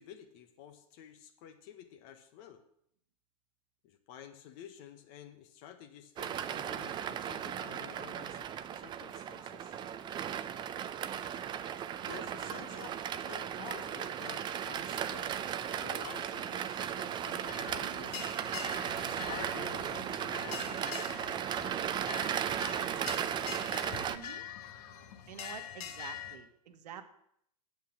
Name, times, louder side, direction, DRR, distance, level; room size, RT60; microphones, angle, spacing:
voice 1, 0.0-2.6 3.8-9.8 12.1-13.0 13.2-15.4 15.8-18.2 18.9-20.8 23.9-24.0, left 9 dB, 45° left, 7 dB, 1.1 m, -50 dB
sound 1, 6.2-24.2, right 9 dB, 20° right, 0.6 m, -36 dB
sound 2, 17.4-26.4, left 8 dB, 65° left, 1.6 m, -44 dB
voice 2, 24.1-24.4 25.3-27.0, right 9 dB, 75° right, 8 dB, 1.4 m, -48 dB
8.4 x 8.1 x 7.2 m, 0.72 s
hypercardioid pair, 125°, 21 cm